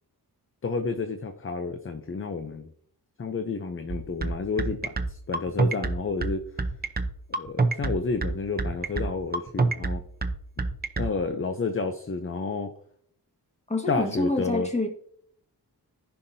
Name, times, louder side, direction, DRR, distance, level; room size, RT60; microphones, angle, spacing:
voice 1, 0.6-2.7 3.2-6.4 7.4-10.0 11.0-12.7 13.9-14.7, left 4 dB, 35° left, 7 dB, 0.6 m, -30 dB
sound 1, 3.9-11.1, right 3 dB, 25° right, 0.7 m, -26 dB
voice 2, 13.7-15.0, left 2 dB, 15° left, 3 dB, 1.6 m, -27 dB
14.5 x 5.7 x 2.7 m, 0.63 s
wide cardioid pair, 125°, 40 cm